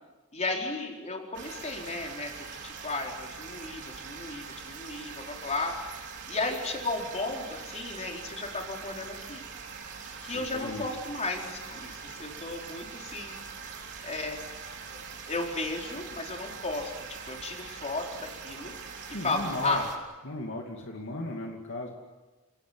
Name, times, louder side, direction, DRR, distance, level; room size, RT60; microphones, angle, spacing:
voice 1, 0.3-2.3 2.6-6.0 6.3-9.4 10.2-13.4 14.0-14.4 14.9-15.0 15.3-18.7 19.2-19.8, left 2 dB, 35° left, 0 dB, 4.6 m, -34 dB
sound 1, 1.3-20.0, right 5 dB, 55° right, 4.1 m, -43 dB
voice 2, 10.3-10.9 19.1-19.8 20.2-21.9, left 1 dB, 60° left, 1 dB, 2.6 m, -36 dB
29.5 x 18.5 x 9.6 m, 1.3 s
head